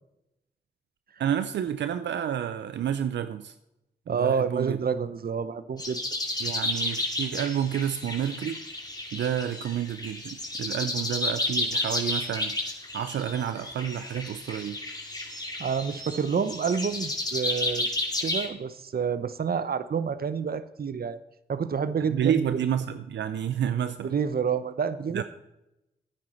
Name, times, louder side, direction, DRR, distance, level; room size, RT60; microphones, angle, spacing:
voice 1, 1.2-3.5 4.1-4.8 6.4-8.6 9.1-12.6 12.9-14.8 22.1-24.2 25.1-25.2, right 9 dB, 85° right, 11 dB, 0.5 m, -29 dB
voice 2, 4.1-6.0 15.6-17.9 18.2-21.2 21.5-22.4 24.0-25.2, right 6 dB, 60° right, 13 dB, 0.8 m, -28 dB
sound 1, 5.8-18.5, left 2 dB, 20° left, 2.4 m, -32 dB
12.0 x 9.6 x 4.4 m, 0.91 s
supercardioid pair, 40°, 18 cm